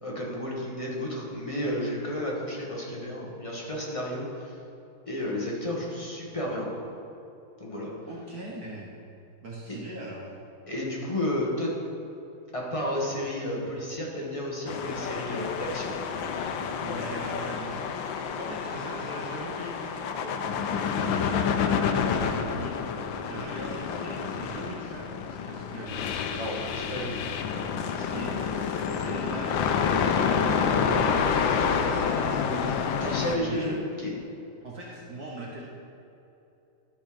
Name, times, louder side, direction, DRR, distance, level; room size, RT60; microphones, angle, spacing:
voice 1, 0.0-4.5 5.1-6.7 7.6-7.9 10.7-11.7 12.5-15.9 26.3-27.2 28.0-28.1 33.0-34.2, left 1 dB, 15° left, -3 dB, 1.5 m, -32 dB
voice 2, 8.1-9.0 9.4-10.3 16.8-26.1 28.1-32.9 33.3-33.8 34.6-35.7, right 2 dB, 55° right, -3 dB, 1.4 m, -40 dB
sound 1, 14.7-33.4, left 6 dB, 75° left, 1.3 m, -28 dB
12.5 x 5.3 x 5.1 m, 2.9 s
omnidirectional pair, 2.3 m